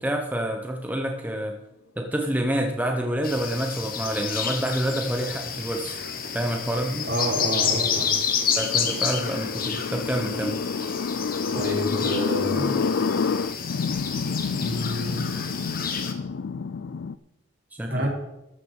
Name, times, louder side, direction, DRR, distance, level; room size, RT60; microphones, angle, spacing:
voice 1, 0.0-1.6 2.0-6.0 6.3-7.1 8.5-10.6 17.8-18.1, right 1 dB, 10° right, 2 dB, 0.8 m, -27 dB
sound 1, 3.2-16.1, left 7 dB, 45° left, 1.3 m, -30 dB
sound 2, 4.6-17.1, left 5 dB, 70° left, 0.4 m, -30 dB
voice 2, 7.1-8.1 11.5-12.8 14.5-15.3 17.9-18.1, equal, 55° right, -1 dB, 3.2 m, -28 dB
13.5 x 6.6 x 6.4 m, 0.88 s
head